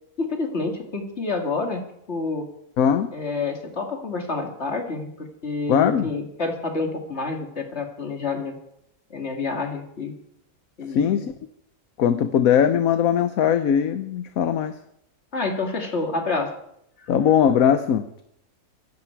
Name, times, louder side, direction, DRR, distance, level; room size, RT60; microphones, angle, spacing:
voice 1, 0.2-1.8 2.1-2.4 3.1-8.6 9.1-10.1 10.8-11.3 15.3-16.5 17.0-17.1, left 3 dB, 45° left, 2 dB, 2.8 m, -28 dB
voice 2, 2.8-3.1 5.7-6.1 10.9-11.3 12.0-14.7 17.1-18.2, left 8 dB, 70° left, 10 dB, 1.2 m, -20 dB
24.5 x 12.0 x 4.7 m, 0.77 s
omnidirectional pair, 1.5 m